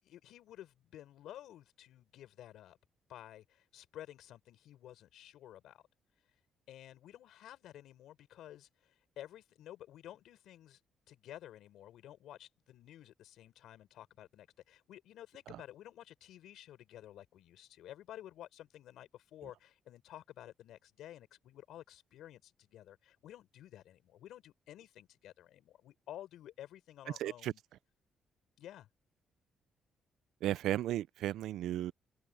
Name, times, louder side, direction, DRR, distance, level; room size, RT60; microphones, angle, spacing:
voice 1, 0.0-2.8 3.1-5.8 6.7-10.8 11.1-27.6 28.6-28.9, left 12 dB, 80° left, 6.0 m, -52 dB
voice 2, 27.2-27.5 30.4-31.9, right 13 dB, 80° right, 0.4 m, -34 dB
cardioid pair, 90°, 0 cm